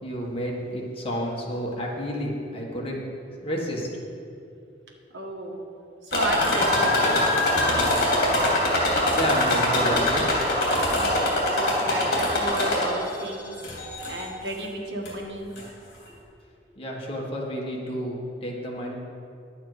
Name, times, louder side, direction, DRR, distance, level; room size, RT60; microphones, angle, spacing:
voice 1, 0.0-3.0 3.4-4.0 9.1-10.3 16.8-19.0, equal, 30° left, -2 dB, 1.6 m, -30 dB
voice 2, 5.1-5.6 6.0-7.2 7.7-7.9 10.9-13.5 14.1-15.5, right 1 dB, 70° right, 0 dB, 1.7 m, -33 dB
sound 1, 6.1-13.1 13.6-14.3 15.1-15.2 15.6-15.7, left 1 dB, 55° left, 3.0 m, -23 dB
11.0 x 8.8 x 5.0 m, 2.5 s
head